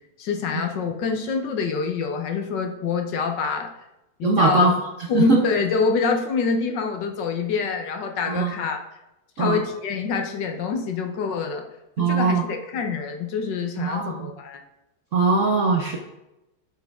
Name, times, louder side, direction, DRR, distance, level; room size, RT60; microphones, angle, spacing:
voice 1, 0.2-3.7 4.2-4.7 5.1-8.8 9.4-11.6 12.0-14.6, left 4 dB, 65° left, 4 dB, 1.4 m, -25 dB
voice 2, 4.2-4.7 5.1-5.4 8.3-8.5 9.4-9.6 12.0-12.4 13.8-14.3 15.1-16.0, right 3 dB, 60° right, 0 dB, 0.8 m, -20 dB
7.9 x 6.4 x 3.5 m, 0.92 s
omnidirectional pair, 2.2 m